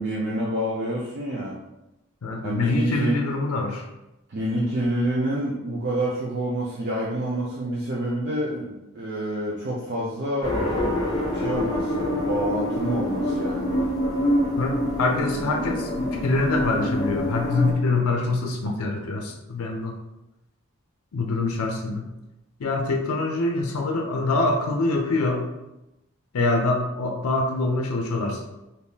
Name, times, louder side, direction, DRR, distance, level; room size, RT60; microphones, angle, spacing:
voice 1, 0.0-1.6 2.4-3.2 4.3-10.7 11.3-13.8, right 1 dB, 50° right, -5 dB, 0.5 m, -27 dB
voice 2, 2.2-3.9 14.6-19.9 21.1-22.1 22.6-25.5 26.3-28.4, left 3 dB, 90° left, 2 dB, 0.5 m, -25 dB
sound 1, 10.4-17.7, left 1 dB, 20° left, 0.5 m, -26 dB
3.5 x 2.7 x 2.7 m, 0.94 s
head